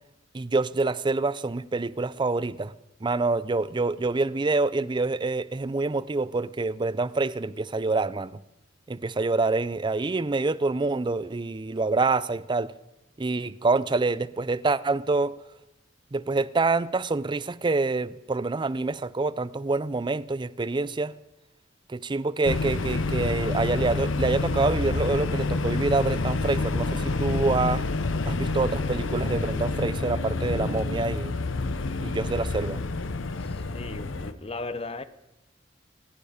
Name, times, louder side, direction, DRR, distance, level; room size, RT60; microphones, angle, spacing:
voice 1, 0.3-2.7 3.0-8.3 8.9-12.7 13.2-15.4 16.1-21.1 21.9-27.9 28.3-31.3 32.0-32.8, right 3 dB, 25° right, 0.5 m, -26 dB
sound 1, 22.4-34.3, left 3 dB, 80° left, 0.8 m, -28 dB
voice 2, 33.4-35.0, left 3 dB, 30° left, 0.8 m, -37 dB
27.5 x 9.4 x 5.0 m
head